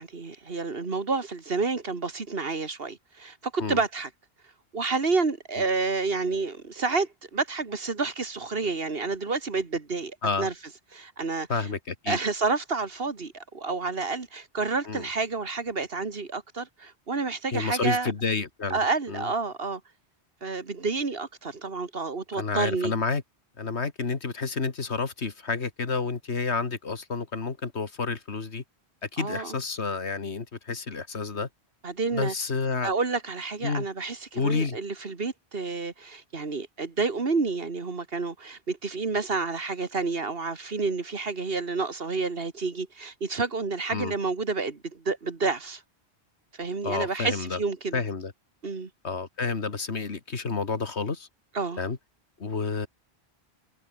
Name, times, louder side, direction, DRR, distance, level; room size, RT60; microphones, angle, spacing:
voice 1, 0.0-4.1 4.7-10.5 10.9-11.5 12.1-18.1 18.7-19.8 20.4-22.9 29.2-29.6 31.8-32.3 32.8-45.8 46.6-48.0 48.6-48.9 51.5-51.8, right 4 dB, 60° right, 2.1 m, -29 dB
voice 2, 11.5-12.2 14.9-15.1 17.5-18.8 19.1-19.3 22.3-23.2 23.6-28.6 29.0-31.5 32.1-32.9 33.6-33.9 34.3-34.8 43.9-44.1 46.8-47.6 47.9-48.3 49.0-51.3 51.8-52.0 52.4-52.9, left 4 dB, 85° left, 2.3 m, -30 dB
omnidirectional pair, 1.1 m